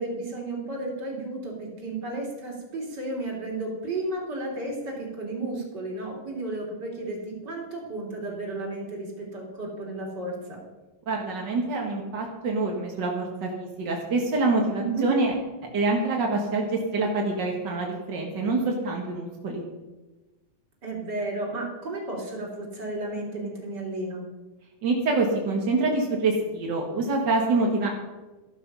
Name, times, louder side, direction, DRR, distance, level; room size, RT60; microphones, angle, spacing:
voice 1, 0.0-10.6 14.8-15.1 20.8-24.2, right 2 dB, 30° right, -1 dB, 3.6 m, -33 dB
voice 2, 11.1-15.3 15.7-19.6 24.8-27.9, right 3 dB, 45° right, 0 dB, 1.5 m, -26 dB
14.5 x 12.0 x 5.6 m, 1.1 s
omnidirectional pair, 4.4 m